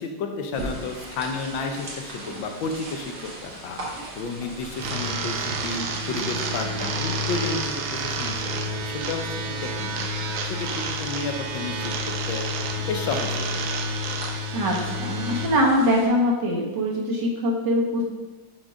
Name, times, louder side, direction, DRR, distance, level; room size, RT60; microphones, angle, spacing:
voice 1, 0.0-3.8 4.2-8.5 8.8-10.1 10.4-12.4 12.8-13.8, left 4 dB, 80° left, 4 dB, 1.5 m, -32 dB
sound 1, 0.5-16.1, right 1 dB, 50° right, 1.6 m, -40 dB
sound 2, 4.7-15.5, right 1 dB, 85° right, 1.5 m, -29 dB
voice 2, 14.5-18.0, equal, 65° right, -2 dB, 1.8 m, -23 dB
6.1 x 3.9 x 5.0 m, 1.2 s
omnidirectional pair, 2.1 m